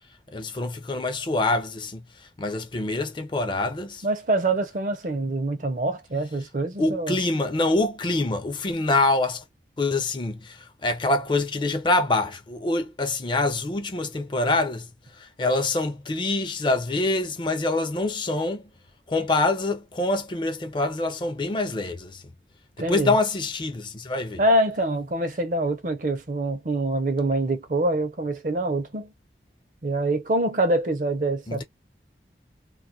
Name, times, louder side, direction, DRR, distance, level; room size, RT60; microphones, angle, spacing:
voice 1, 0.3-2.0 2.4-4.0 6.8-9.4 9.8-14.9 15.2-18.6 19.1-22.2 22.9-24.4 31.5-31.6, left 2 dB, 25° left, 0.4 m, -25 dB
voice 2, 4.0-7.2 22.8-23.1 24.4-29.1 29.8-31.6, right 2 dB, 45° right, 0.5 m, -25 dB
2.3 x 2.1 x 2.5 m
head